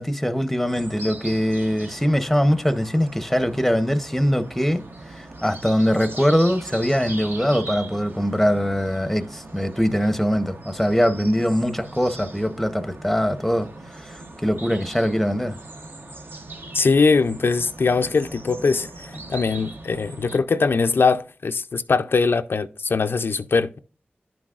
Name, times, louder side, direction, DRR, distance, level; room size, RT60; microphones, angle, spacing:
voice 1, 0.0-4.8 5.1-15.6, equal, 5° left, 0.7 m, -22 dB
sound 1, 0.6-20.4, right 2 dB, 60° right, 0.9 m, -40 dB
voice 2, 16.7-23.8, left 4 dB, 70° left, 0.4 m, -21 dB
10.5 x 5.9 x 2.4 m
wide cardioid pair, 75°, 4 cm